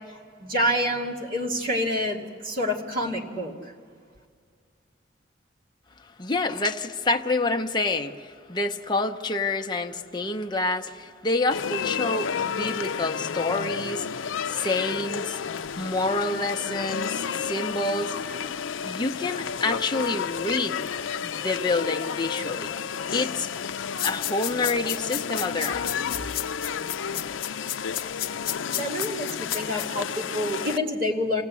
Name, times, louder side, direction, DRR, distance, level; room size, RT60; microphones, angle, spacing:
voice 1, 0.1-3.7 28.7-31.4, left 1 dB, 50° right, -1 dB, 2.4 m, -28 dB
voice 2, 6.2-15.4 15.8-18.1 18.8-20.9 21.2-22.7 23.1-23.5 24.0-25.9, left 3 dB, 25° left, 4 dB, 0.8 m, -28 dB
sound 1, 11.5-30.8, left 7 dB, 85° left, 0.5 m, -31 dB
sound 2, 24.0-29.9, left 12 dB, 50° left, 1.0 m, -31 dB
28.0 x 16.5 x 8.4 m, 2.1 s
head